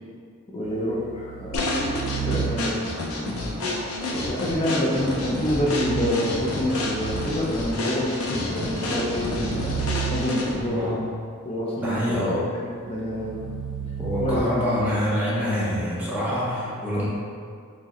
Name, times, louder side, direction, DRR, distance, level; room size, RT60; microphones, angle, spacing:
voice 1, 0.5-1.6 2.3-2.8 4.1-9.8 10.1-10.9 11.4-12.1 12.5-13.4 14.2-14.4, left 1 dB, 25° left, -4 dB, 0.4 m, -27 dB
sound 1, 0.7-3.0 5.1-7.7 8.4-10.8 12.9-14.4, right 7 dB, 55° right, 0.3 m, -34 dB
sound 2, 1.5-10.7, left 2 dB, 85° left, 0.5 m, -30 dB
sound 3, 1.7-11.0, equal, 35° right, 0.8 m, -39 dB
voice 2, 10.6-11.0 11.8-12.5 14.0-17.1, equal, 10° right, -9 dB, 0.7 m, -25 dB
4.6 x 2.1 x 2.9 m, 2.2 s
head